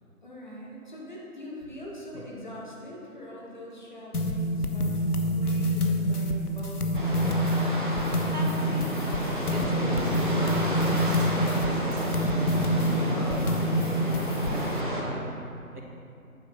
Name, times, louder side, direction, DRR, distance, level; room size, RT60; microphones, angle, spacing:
voice 1, 0.2-5.0 5.3-6.9 9.5-10.1 13.0-14.2, left 1 dB, 30° left, -5 dB, 1.2 m, -42 dB
sound 1, 4.1-14.8, equal, 80° left, 0.9 m, -27 dB
sound 2, 6.9-15.0, right 1 dB, 35° right, 1.0 m, -30 dB
voice 2, 8.2-9.2 9.5-10.7 11.0-13.5 14.5-15.8, right 1 dB, 80° right, -1 dB, 1.6 m, -40 dB
8.6 x 6.1 x 4.3 m, 2.6 s
figure-of-eight pair, 160°, 44 cm